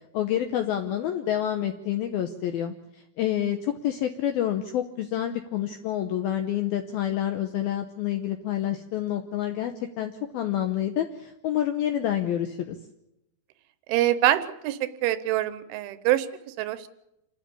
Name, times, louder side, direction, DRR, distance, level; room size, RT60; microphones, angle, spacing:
voice 1, 0.1-2.7 3.2-12.8, left 11 dB, 80° left, 6 dB, 2.2 m, -28 dB
voice 2, 13.9-16.9, right 13 dB, 80° right, 13 dB, 3.2 m, -25 dB
28.0 x 12.5 x 8.4 m, 0.87 s
omnidirectional pair, 5.5 m